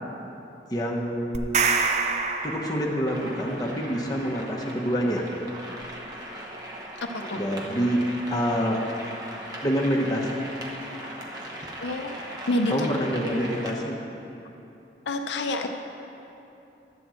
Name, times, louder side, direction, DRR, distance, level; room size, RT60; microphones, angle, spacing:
voice 1, 0.7-1.7 2.4-5.3 7.3-8.8 9.6-10.3 12.7-14.0, equal, 20° left, -1 dB, 0.9 m, -26 dB
sound 1, 1.3-3.3, right 4 dB, 40° right, 0.4 m, -26 dB
sound 2, 2.8-3.0 3.4-3.6 4.2-4.4 5.1-5.3 6.3-6.4 7.2-7.6, equal, 40° left, 1.3 m, -45 dB
sound 3, 3.1-13.7, right 1 dB, 20° right, 0.9 m, -39 dB
voice 2, 7.0-7.4 11.8-12.2 12.5-12.9 15.1-15.7, left 1 dB, 85° left, 5 dB, 0.5 m, -27 dB
11.5 x 4.3 x 7.6 m, 2.9 s
head